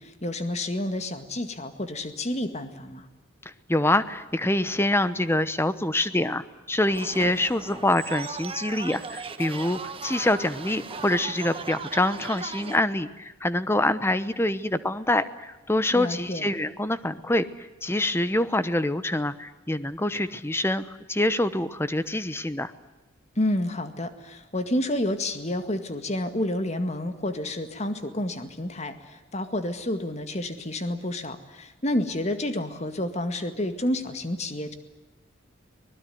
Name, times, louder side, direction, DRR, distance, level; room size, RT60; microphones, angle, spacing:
voice 1, 0.0-3.1 15.9-16.5 23.4-34.7, left 1 dB, 35° left, 9 dB, 2.0 m, -29 dB
voice 2, 3.7-22.7, left 1 dB, 10° left, 13 dB, 1.0 m, -25 dB
sound 1, 6.8-12.8, right 4 dB, 30° right, 1.3 m, -37 dB
24.0 x 20.5 x 9.3 m, 1.1 s
head